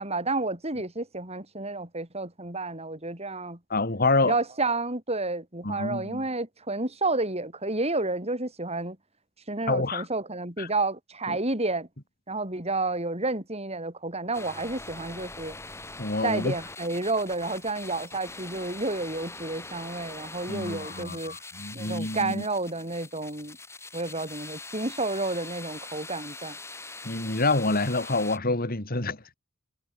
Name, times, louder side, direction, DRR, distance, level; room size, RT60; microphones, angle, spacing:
voice 1, 0.0-3.6 4.2-9.0 9.5-11.9 12.3-15.5 16.2-21.3 21.7-23.6 23.9-26.6, right 2 dB, 30° right, 7.0 m, -30 dB
voice 2, 3.7-4.3 5.6-6.2 9.7-10.0 10.6-10.7 11.3-11.4 16.0-16.5 20.5-22.4 27.0-29.3, left 2 dB, 45° left, 3.1 m, -27 dB
sound 1, 14.3-28.4, left 3 dB, 15° left, 4.5 m, -43 dB
head